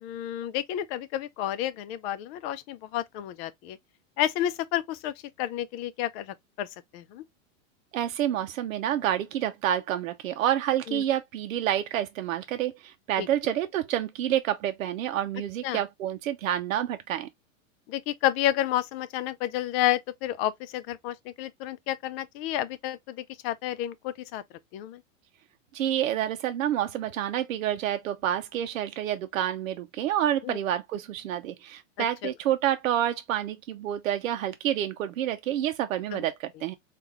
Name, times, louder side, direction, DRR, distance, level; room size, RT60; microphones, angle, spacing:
voice 1, 0.0-3.8 4.2-7.2 10.9-11.0 13.2-13.3 15.6-15.8 17.9-24.4 24.7-25.0 30.4-30.6 32.0-32.3 36.1-36.2, left 12 dB, 50° left, 0.6 m, -31 dB
voice 2, 7.9-17.3 25.7-36.7, right 11 dB, 85° right, 0.6 m, -28 dB
3.7 x 2.5 x 2.9 m
hypercardioid pair, 115°, 39 cm